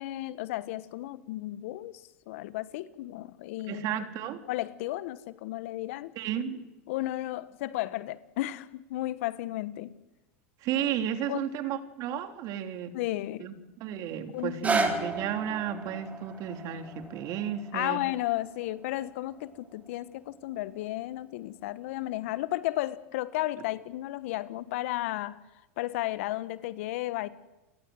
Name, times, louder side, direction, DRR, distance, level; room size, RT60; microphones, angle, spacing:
voice 1, 0.0-3.9 4.5-6.1 6.9-9.9 11.3-11.5 12.9-13.5 14.3-14.6 17.7-25.4 25.8-27.3, left 16 dB, 70° left, 15 dB, 1.3 m, -33 dB
voice 2, 3.7-4.4 6.1-6.7 10.6-12.9 13.4-18.0, right 9 dB, 50° right, 6 dB, 3.3 m, -33 dB
sound 1, 14.4-20.5 21.1-21.2, right 3 dB, 20° right, 4.5 m, -35 dB
29.5 x 22.0 x 7.9 m, 1.0 s
hypercardioid pair, 95°, 8 cm